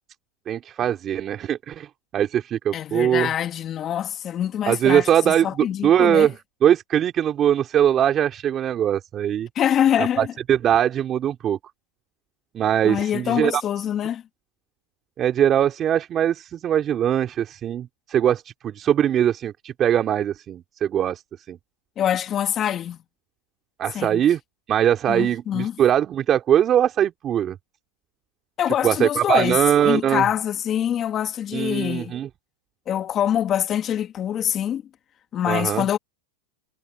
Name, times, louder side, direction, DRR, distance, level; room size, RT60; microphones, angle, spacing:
voice 1, 0.5-1.9 2.1-3.3 4.7-6.3 6.6-9.5 10.0-11.6 12.5-13.6 15.2-21.2 21.5-21.6 23.8-24.4 24.7-27.6 28.8-30.3 31.5-32.3 35.5-35.9, right 10 dB, 30° right, 3.1 m, -21 dB
voice 2, 2.7-6.3 9.5-10.3 12.8-14.2 22.0-23.0 23.9-24.2 25.1-25.8 28.6-32.2 32.9-34.8 35.3-36.0, left 10 dB, 30° left, 2.7 m, -24 dB
supercardioid pair, 125°, 0 cm